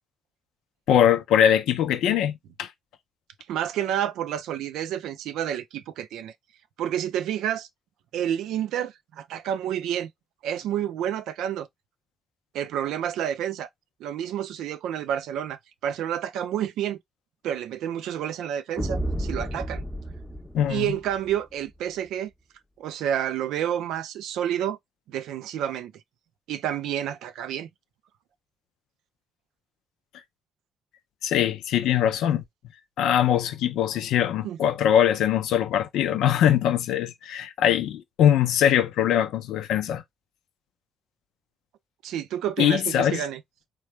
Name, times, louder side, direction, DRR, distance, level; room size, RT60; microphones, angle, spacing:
voice 1, 0.9-2.7 20.5-20.9 31.2-32.4 33.0-40.0 42.6-43.2, left 10 dB, 80° left, 0.5 m, -22 dB
voice 2, 3.5-6.3 6.8-7.7 8.1-10.1 10.4-11.7 12.5-13.7 14.0-17.0 17.4-19.8 20.7-22.3 22.8-24.8 25.1-25.9 26.5-27.7 34.4-34.6 42.0-43.4, right 10 dB, 80° right, 0.4 m, -29 dB
sound 1, 18.8-21.4, right 1 dB, 5° left, 0.7 m, -32 dB
3.3 x 2.2 x 3.0 m
hypercardioid pair, 50°, 0 cm